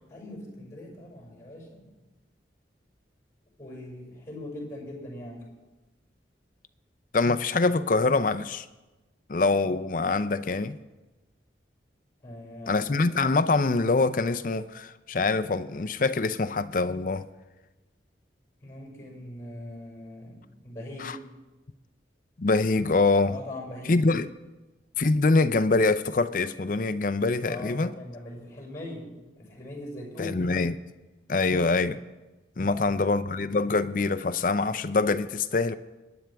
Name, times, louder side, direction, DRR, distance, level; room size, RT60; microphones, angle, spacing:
voice 1, 0.1-1.8 3.6-5.4 12.2-13.0 18.6-20.4 20.6-21.1 23.3-24.0 27.4-29.1 29.3-30.4 32.6-33.3, left 1 dB, 15° left, 5.8 m, -41 dB
voice 2, 7.1-8.7 9.3-10.8 12.7-17.2 21.0-21.2 22.4-23.4 23.9-24.3 25.0-27.9 30.2-30.7 31.3-32.0 32.6-35.7, left 3 dB, 45° left, 0.5 m, -24 dB
24.5 x 10.5 x 3.5 m
head